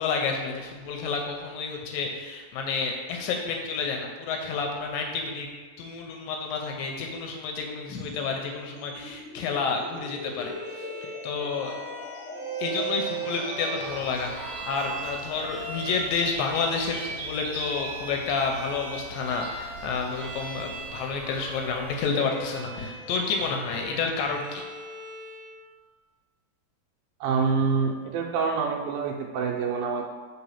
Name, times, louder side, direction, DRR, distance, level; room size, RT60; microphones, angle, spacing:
voice 1, 0.0-5.5 5.8-10.5 11.2-11.7 12.6-24.6, left 5 dB, 80° left, 2 dB, 2.2 m, -30 dB
sound 1, 7.9-24.8, left 2 dB, 50° left, 1.7 m, -43 dB
Bowed string instrument, 10.4-25.6, right 4 dB, 40° right, 0.4 m, -39 dB
sound 2, 13.8-22.0, right 3 dB, 65° right, 1.8 m, -43 dB
voice 2, 27.2-30.0, right 5 dB, 80° right, 0 dB, 2.3 m, -26 dB
4.7 x 4.0 x 5.6 m, 1.4 s
omnidirectional pair, 4.2 m